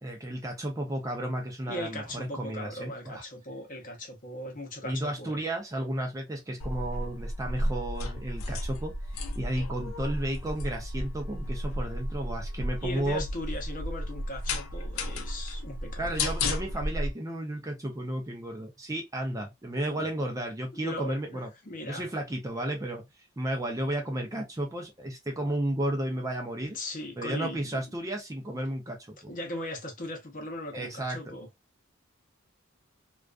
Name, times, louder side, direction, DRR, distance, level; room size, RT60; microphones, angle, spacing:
voice 1, 0.0-3.2 4.8-13.2 16.0-21.5 21.8-23.0 23.4-26.8 27.2-29.2 30.7-31.3, right 1 dB, 15° right, 0.5 m, -33 dB
voice 2, 1.7-5.4 12.8-16.1 19.9-20.1 20.8-22.1 26.6-27.8 29.3-31.5, left 1 dB, 40° left, 0.8 m, -38 dB
sound 1, 6.6-17.1, left 1 dB, 85° left, 0.5 m, -33 dB
2.3 x 2.3 x 2.3 m
head